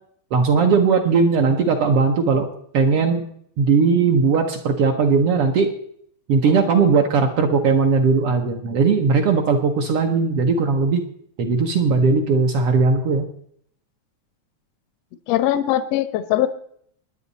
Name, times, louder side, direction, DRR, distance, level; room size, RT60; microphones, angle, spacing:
voice 1, 0.3-2.5 2.7-3.3 3.6-5.7 6.3-11.0 11.4-13.3, right 4 dB, 60° right, 3 dB, 1.8 m, -18 dB
voice 2, 15.3-16.5, left 13 dB, 70° left, 12 dB, 1.7 m, -20 dB
21.0 x 9.8 x 4.1 m, 0.67 s
omnidirectional pair, 3.4 m